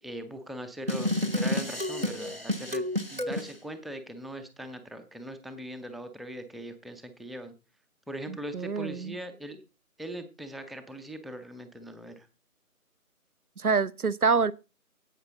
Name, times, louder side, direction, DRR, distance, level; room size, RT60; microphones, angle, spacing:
voice 1, 0.0-7.5 8.1-9.6 10.0-12.3, right 1 dB, ahead, 0.6 m, -40 dB
sound 1, 0.9-3.5, left 1 dB, 40° right, 0.6 m, -30 dB
voice 2, 8.5-9.1 13.6-14.5, right 5 dB, 75° right, 0.8 m, -26 dB
16.5 x 5.8 x 3.9 m
figure-of-eight pair, 170°, 44 cm